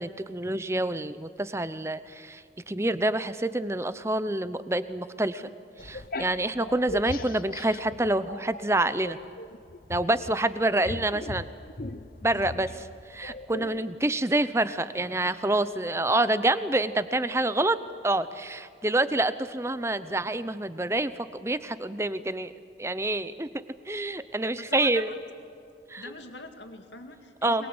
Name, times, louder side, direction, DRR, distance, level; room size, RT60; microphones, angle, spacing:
voice 1, 0.0-5.5 5.8-9.2 9.9-11.5 12.2-17.8 18.0-22.5 22.8-23.5 23.9-25.1 25.9-26.1 27.4-27.6, right 2 dB, 15° right, 13 dB, 0.7 m, -27 dB
sound 1, 5.8-8.6 9.0-13.8, left 2 dB, 50° left, 0.8 m, -39 dB
voice 2, 24.7-25.2 26.0-27.7, left 3 dB, 85° left, 6 dB, 2.2 m, -42 dB
23.0 x 22.0 x 8.0 m, 2.4 s
head